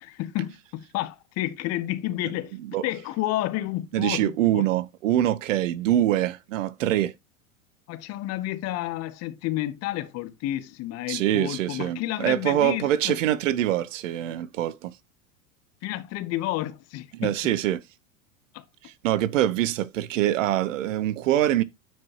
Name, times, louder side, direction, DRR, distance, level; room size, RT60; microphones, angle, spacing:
voice 1, 0.0-2.6 2.8-4.7 7.9-13.2 15.8-17.3 18.5-18.6, left 15 dB, 40° left, 0.9 m, -30 dB
voice 2, 3.9-7.1 11.1-14.9 17.1-17.8 18.8-21.6, right 12 dB, 65° right, 0.7 m, -24 dB
9.2 x 4.8 x 2.8 m
hypercardioid pair, 90°, 41 cm